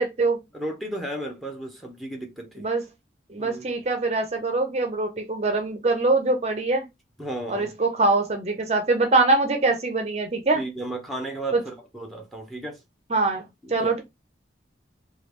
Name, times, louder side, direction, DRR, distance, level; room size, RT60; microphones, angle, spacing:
voice 1, 0.0-0.4 2.6-2.8 3.3-6.8 7.5-10.6 11.5-11.6 13.1-14.0, right 3 dB, 35° right, 0.5 m, -23 dB
voice 2, 0.5-2.7 3.4-3.7 7.2-7.7 10.5-12.8 13.6-13.9, right 1 dB, ahead, 0.7 m, -34 dB
3.3 x 2.3 x 3.1 m
head